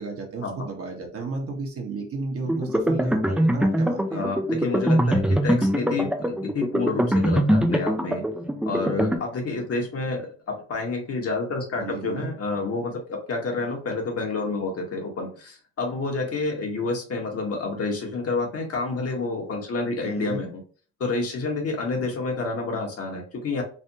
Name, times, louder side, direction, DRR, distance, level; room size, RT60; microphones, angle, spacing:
voice 1, 0.0-4.3 11.8-12.3 20.0-20.4, right 3 dB, 50° right, 1 dB, 1.0 m, -33 dB
sound 1, 2.5-9.2, equal, 5° right, 0.3 m, -23 dB
voice 2, 4.1-8.2 8.6-20.6 21.0-23.6, left 3 dB, 50° left, 1 dB, 1.1 m, -29 dB
3.3 x 2.0 x 2.7 m, 0.39 s
cardioid pair, 90°, 30 cm